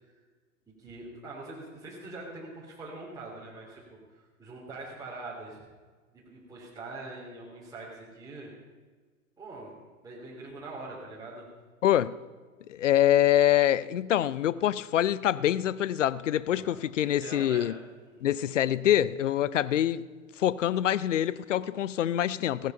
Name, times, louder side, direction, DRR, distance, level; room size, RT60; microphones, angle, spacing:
voice 1, 0.8-3.8 4.1-5.6 6.1-8.5 9.4-9.7 10.0-11.5 16.5-17.7 18.0-18.3, right 2 dB, 10° right, -5 dB, 3.0 m, -43 dB
voice 2, 11.8-12.2 12.7-17.8 18.2-20.1 20.4-22.7, left 11 dB, 60° left, 18 dB, 0.6 m, -25 dB
16.0 x 11.5 x 5.3 m, 1.4 s
figure-of-eight pair, 105°, 42 cm